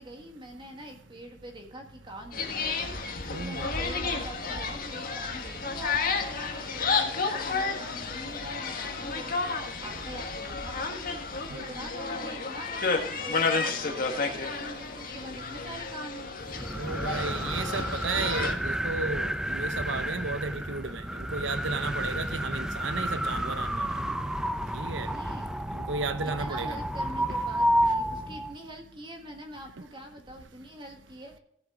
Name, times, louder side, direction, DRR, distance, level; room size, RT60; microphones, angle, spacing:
voice 1, 0.0-2.9 3.4-9.5 9.8-16.3 24.8-25.7 26.2-31.4, right 1 dB, 25° right, 1.6 m, -44 dB
sound 1, 2.3-18.5, left 4 dB, 50° left, 1.6 m, -31 dB
voice 2, 3.3-3.7 11.5-11.6 16.7-23.9 24.7-25.1 25.7-26.8, right 4 dB, 90° right, 0.8 m, -34 dB
sound 2, 16.4-28.5, equal, 5° right, 0.5 m, -31 dB
16.0 x 7.4 x 3.7 m
head